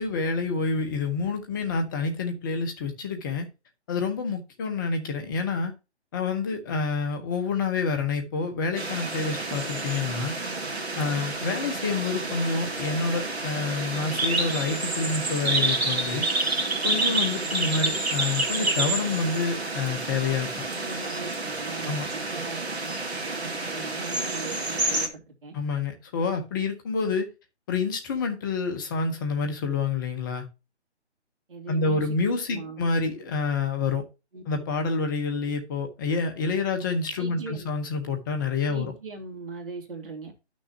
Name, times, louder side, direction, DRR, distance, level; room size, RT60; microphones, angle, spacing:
voice 1, 0.0-3.5 3.9-5.7 6.1-10.3 11.0-16.3 16.8-20.5 21.8-22.1 25.5-27.3 27.7-30.4 31.7-34.0 34.5-38.9, left 4 dB, 20° left, 1.2 m, -28 dB
sound 1, 8.8-25.1, right 2 dB, 65° right, 2.0 m, -29 dB
voice 2, 17.0-17.4 20.7-25.5 31.5-32.2 32.5-32.8 34.3-34.4 37.2-37.7 38.7-40.3, right 3 dB, 50° right, 2.8 m, -40 dB
11.0 x 6.3 x 2.7 m
figure-of-eight pair, 150°, 34 cm